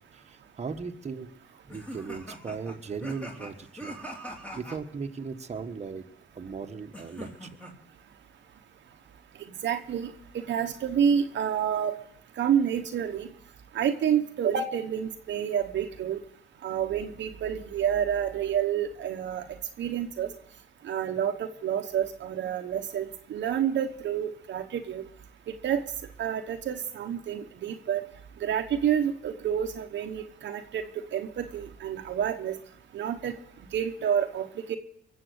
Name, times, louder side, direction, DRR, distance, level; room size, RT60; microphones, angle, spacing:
voice 1, 0.1-4.0 4.5-6.1 6.3-7.5, right 5 dB, 35° right, 4 dB, 1.4 m, -38 dB
sound 1, 1.7-4.8 6.9-7.7, equal, 5° left, 3.1 m, -42 dB
voice 2, 9.6-10.1 10.5-11.9 12.4-13.3 13.7-16.2 16.6-19.4 19.8-20.3 20.9-25.0 25.6-25.8 26.2-28.0 28.4-30.8 31.1-32.5 32.9-33.3 33.7-34.8, right 8 dB, 65° right, 5 dB, 1.1 m, -28 dB
22.0 x 7.6 x 8.0 m, 0.73 s
cardioid pair, 90°, 20 cm